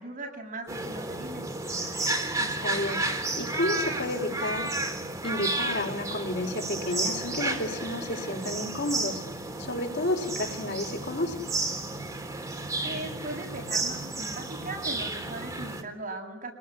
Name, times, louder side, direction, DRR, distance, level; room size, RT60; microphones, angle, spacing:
voice 1, 0.0-1.5 12.8-16.5, right 2 dB, 40° right, 2 dB, 7.7 m, -38 dB
sound 1, 0.7-15.8, right 2 dB, 15° right, 3.4 m, -32 dB
voice 2, 2.4-3.0 3.4-4.7 5.2-9.2 9.6-11.5, left 1 dB, 60° left, 3 dB, 4.8 m, -31 dB
27.5 x 20.0 x 10.0 m, 0.84 s
head